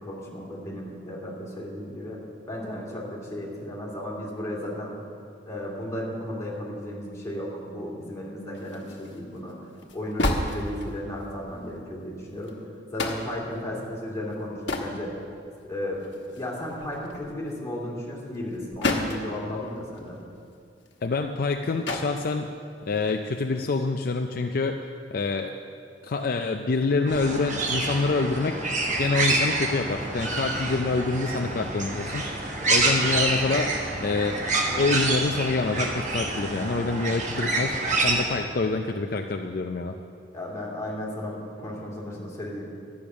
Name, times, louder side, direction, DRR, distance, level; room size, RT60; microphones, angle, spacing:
voice 1, 0.0-2.2 2.5-5.0 5.4-9.5 9.9-12.6 12.9-15.1 15.6-20.2 40.3-42.6, left 1 dB, 15° left, -5 dB, 2.5 m, -34 dB
sound 1, 8.5-11.2 11.8-11.9 12.2-12.5 13.0-13.5 14.3-14.9 15.4-15.5 15.9-17.5 18.3-19.3 19.6-19.7 19.9-21.6 21.8-22.2 23.1-23.5, left 2 dB, 80° left, 1.3 m, -32 dB
voice 2, 21.0-22.5 22.9-24.8 25.1-25.5 26.0-28.6 29.0-34.4 34.7-40.0, left 3 dB, 55° left, 4 dB, 0.5 m, -26 dB
sound 2, 27.1-38.2, right 2 dB, 40° right, 1.3 m, -27 dB
12.0 x 8.6 x 6.2 m, 2.4 s
head